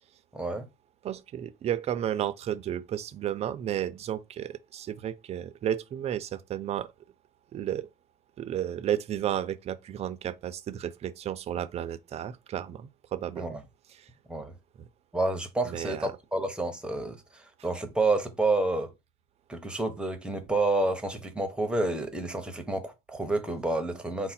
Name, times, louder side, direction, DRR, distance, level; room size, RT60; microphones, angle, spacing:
voice 1, 0.3-0.7 13.4-13.6 14.3-14.5 15.1-18.9 19.5-24.3, right 2 dB, 5° right, 0.7 m, -29 dB
voice 2, 1.0-6.9 7.5-7.9 8.4-13.6 14.0-14.1 15.6-16.1, right 10 dB, 40° right, 0.4 m, -32 dB
4.8 x 2.1 x 4.2 m
cardioid pair, 145°, 17 cm